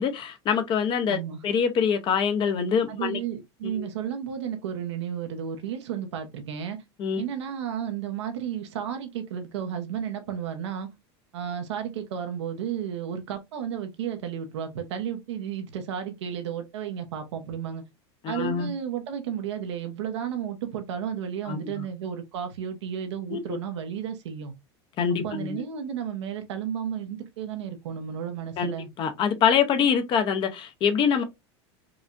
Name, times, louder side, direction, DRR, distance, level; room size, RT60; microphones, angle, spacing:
voice 1, 0.0-3.2 3.6-3.9 7.0-7.2 18.2-18.7 21.5-21.8 23.3-23.4 25.0-25.6 28.6-31.2, left 7 dB, 35° left, 0.8 m, -25 dB
voice 2, 1.1-1.4 2.9-6.8 7.2-10.9 11.3-17.8 18.3-24.5 25.2-28.9, right 8 dB, 90° right, 1.0 m, -33 dB
4.8 x 2.4 x 2.5 m
supercardioid pair, 135°, 14 cm